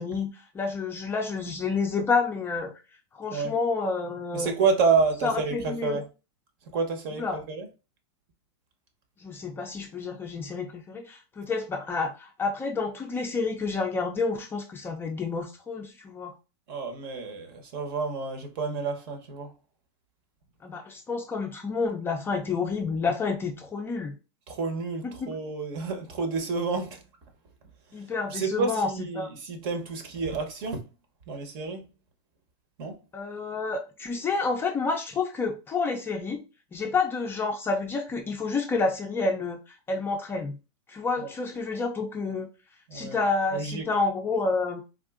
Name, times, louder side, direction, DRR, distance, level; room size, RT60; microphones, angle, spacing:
voice 1, 0.0-2.7 3.1-4.5 5.2-6.0 7.1-7.4 9.2-16.3 20.6-24.2 25.0-25.3 27.9-29.3 33.1-36.4 36.7-40.6 40.9-42.5 42.9-44.8, left 4 dB, 15° left, 0.4 m, -29 dB
voice 2, 4.3-6.0 6.7-7.7 16.7-19.5 24.5-27.0 28.3-30.8 31.3-31.8 32.8-33.0 42.9-43.2 43.5-43.8, right 4 dB, 50° right, 1.0 m, -29 dB
3.7 x 2.5 x 2.4 m
supercardioid pair, 140°, 15 cm